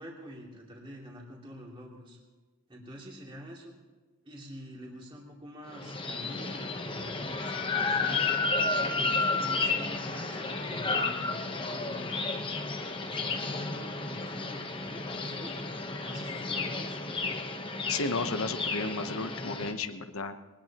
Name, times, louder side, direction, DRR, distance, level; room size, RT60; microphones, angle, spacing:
voice 1, 0.0-2.2 2.7-3.7 4.2-8.4 8.9-12.4 13.0-17.0, equal, 20° right, -2 dB, 2.7 m, -47 dB
sound 1, 5.7-19.7, left 3 dB, 25° left, 1.0 m, -32 dB
voice 2, 17.9-20.4, left 3 dB, 70° left, 9 dB, 1.0 m, -33 dB
23.0 x 19.0 x 3.0 m, 1.3 s
head